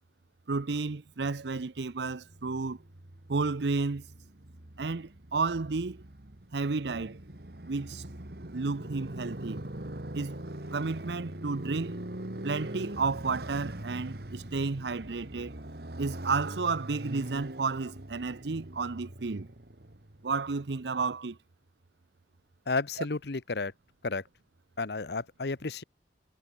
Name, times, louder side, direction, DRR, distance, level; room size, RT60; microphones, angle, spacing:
voice 1, 0.5-2.8 3.3-4.0 4.8-6.0 6.5-7.2 7.6-8.0 8.5-9.7 10.1-10.4 10.7-12.0 12.4-15.6 16.0-19.5 20.2-21.4, right 4 dB, 80° right, 0.7 m, -32 dB
Motorcycle, 2.2-20.3, right 1 dB, 60° right, 2.0 m, -42 dB
voice 2, 22.7-23.7 24.0-24.2 24.8-25.8, left 3 dB, 70° left, 0.9 m, -32 dB
head